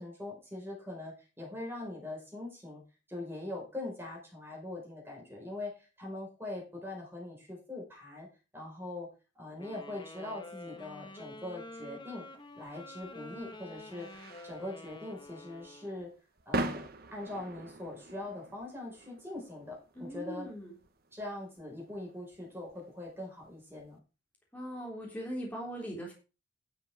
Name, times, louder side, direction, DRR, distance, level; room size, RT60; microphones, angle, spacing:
voice 1, 0.0-2.8 3.1-8.3 8.5-9.1 9.4-12.3 12.5-14.1 14.4-16.1 16.5-16.8 17.1-20.5 21.1-24.0, left 2 dB, 10° right, -2 dB, 4.9 m, -42 dB
sound 1, 9.6-16.1, left 2 dB, 25° left, 1.7 m, -48 dB
sound 2, 12.6-23.9, right 2 dB, 50° right, 1.2 m, -43 dB
voice 2, 20.0-20.7 24.5-26.1, equal, 10° left, -2 dB, 3.6 m, -40 dB
10.5 x 7.5 x 4.8 m, 0.32 s
head